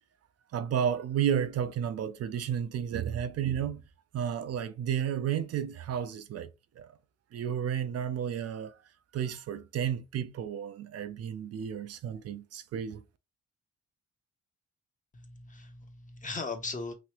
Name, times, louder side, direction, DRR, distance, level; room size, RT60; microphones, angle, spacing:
voice 1, 0.5-3.8 4.1-6.5 6.8-6.9 7.3-8.7 9.1-13.0, right 9 dB, 55° right, 0.4 m, -32 dB
voice 2, 15.1-16.9, left 3 dB, 25° left, 0.8 m, -38 dB
3.0 x 2.7 x 2.9 m
cardioid pair, 90°, 30 cm